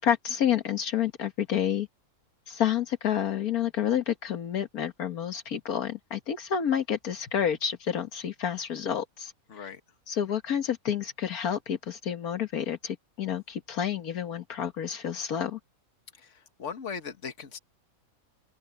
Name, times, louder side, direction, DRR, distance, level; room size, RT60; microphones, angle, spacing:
voice 1, 0.0-1.9 2.5-9.3 9.6-9.7 10.1-15.6, left 9 dB, 80° left, 1.7 m, -29 dB
voice 2, 9.5-9.8 16.2-17.6, left 6 dB, 55° left, 1.9 m, -39 dB
open air
omnidirectional pair, 1.5 m